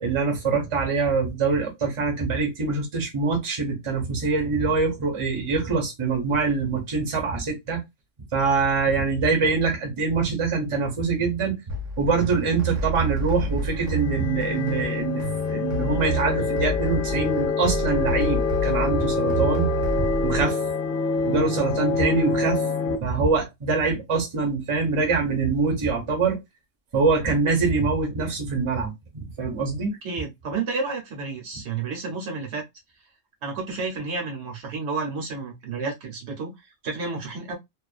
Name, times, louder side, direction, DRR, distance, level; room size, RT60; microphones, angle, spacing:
voice 1, 0.0-7.8 8.3-11.6 12.0-15.2 15.5-19.7 20.0-20.6 21.2-22.6 23.0-26.4 26.9-29.9, right 4 dB, 30° right, 0.7 m, -24 dB
sound 1, 11.7-20.4, right 3 dB, 80° right, 1.1 m, -29 dB
sound 2, 13.4-23.0, left 4 dB, 60° left, 0.6 m, -26 dB
voice 2, 30.0-32.6 33.4-37.5, right 4 dB, 65° right, 1.0 m, -31 dB
2.4 x 2.2 x 2.3 m
omnidirectional pair, 1.3 m